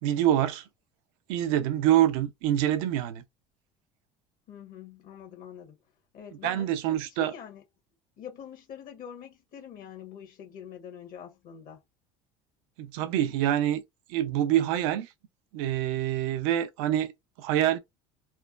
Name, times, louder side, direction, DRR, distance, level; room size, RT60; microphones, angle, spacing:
voice 1, 0.0-0.7 1.3-3.2 6.4-7.3 12.8-13.8 14.1-15.1 15.5-17.1 17.4-17.8, right 12 dB, 75° right, 0.5 m, -26 dB
voice 2, 4.5-5.8 6.1-7.6 8.2-11.8, left 8 dB, 55° left, 1.1 m, -44 dB
3.3 x 2.2 x 2.4 m
supercardioid pair, 85°, 18 cm